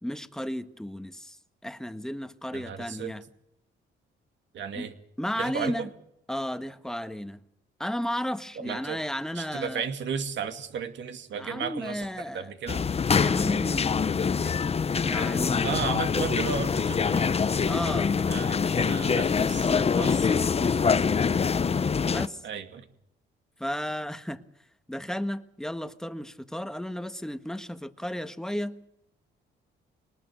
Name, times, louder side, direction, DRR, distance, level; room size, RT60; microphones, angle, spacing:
voice 1, 0.0-1.4 1.6-3.2 4.7-4.9 5.2-5.9 6.3-7.4 7.8-9.9 11.3-12.5 13.2-14.1 14.4-14.5 15.0-15.7 17.6-18.3 19.6-21.0 22.1-22.5 23.6-24.4 24.9-28.8, equal, 5° left, 1.4 m, -34 dB
voice 2, 2.5-3.1 4.5-4.9 5.4-5.9 8.6-9.0 9.3-12.8 15.6-17.3 17.6-18.0 18.3-20.2 22.4-22.9, right 7 dB, 65° right, 2.4 m, -34 dB
sound 1, 12.7-22.3, left 6 dB, 30° left, 0.8 m, -25 dB
23.0 x 19.5 x 6.4 m
cardioid pair, 90°, 20 cm